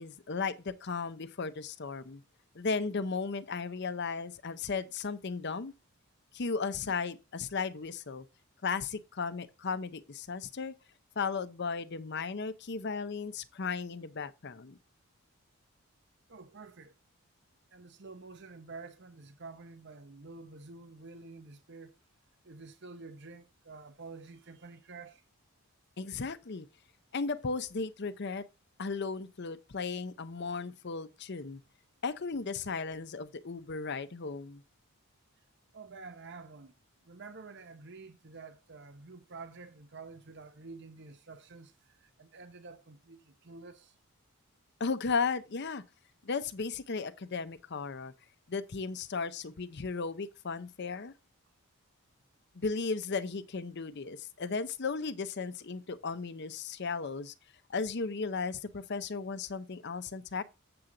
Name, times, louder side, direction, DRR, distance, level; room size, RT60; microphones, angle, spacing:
voice 1, 0.0-2.2 2.5-5.7 6.3-8.3 8.6-10.7 11.2-14.8 26.0-26.7 27.1-28.5 28.8-31.6 32.0-34.6 44.8-45.8 46.2-48.1 48.5-51.1 52.5-57.3 57.7-60.4, left 4 dB, 50° left, 0.6 m, -35 dB
voice 2, 16.3-16.9 17.7-22.0 22.4-25.2 35.7-36.7 37.0-43.9, right 3 dB, 50° right, 0.8 m, -49 dB
7.7 x 7.3 x 3.8 m
head